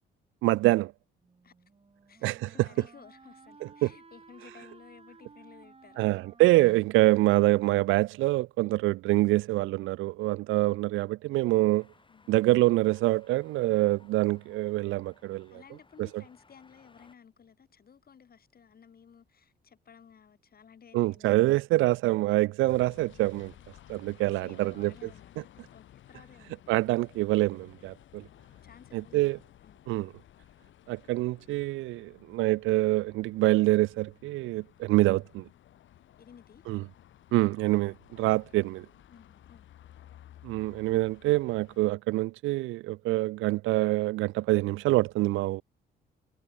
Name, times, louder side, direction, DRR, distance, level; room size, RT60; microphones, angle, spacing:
voice 1, 0.4-0.9 2.2-2.5 3.8-3.9 6.0-11.8 12.3-15.5 20.9-23.5 23.9-24.9 26.7-28.2 28.9-29.4 29.9-30.1 30.9-35.4 36.7-36.8 37.3-38.9 40.4-45.6, right 18 dB, 85° right, 0.4 m, -25 dB
Wind instrument woodwind instrument, 1.2-8.1, right 4 dB, 30° right, 6.7 m, -56 dB
voice 2, 2.1-6.2 12.1-12.3 15.5-21.4 23.9-26.8 28.4-29.8 36.2-36.7 39.1-39.7, left 7 dB, 50° left, 7.2 m, -55 dB
sound 1, 11.8-17.2, left 3 dB, 25° left, 5.6 m, -62 dB
sound 2, 22.7-41.9, left 12 dB, 75° left, 2.1 m, -55 dB
cardioid pair, 90°, 20 cm